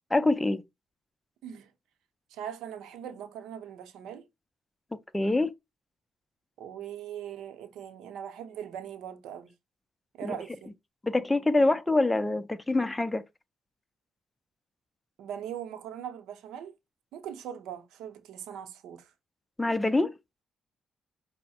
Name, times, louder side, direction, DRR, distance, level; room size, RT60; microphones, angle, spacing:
voice 1, 0.1-0.6 5.1-5.5 10.2-10.4 11.0-13.2 19.6-20.1, left 2 dB, 15° left, 0.5 m, -25 dB
voice 2, 2.3-4.3 6.6-9.5 10.1-10.7 15.2-16.7 17.1-19.1, right 9 dB, 85° right, 0.7 m, -40 dB
5.4 x 2.0 x 4.2 m
cardioid pair, 90°, 0 cm